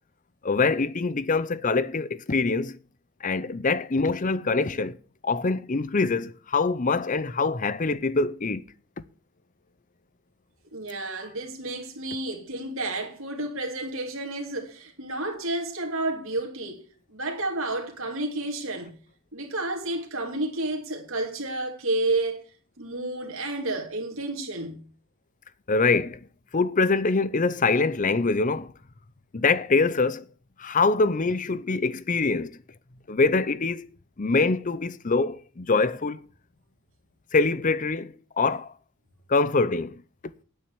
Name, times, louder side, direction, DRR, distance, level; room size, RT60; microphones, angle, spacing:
voice 1, 0.4-2.8 3.2-5.0 5.2-8.6 25.7-26.2 26.5-28.7 29.3-30.3 30.6-32.6 33.1-33.9 34.2-36.3 37.3-38.7 39.3-40.0, left 3 dB, 35° left, 0.6 m, -24 dB
voice 2, 10.7-16.9 17.1-18.9 19.3-22.4 22.8-24.8, right 2 dB, 65° right, 2.6 m, -31 dB
9.8 x 9.1 x 7.1 m
head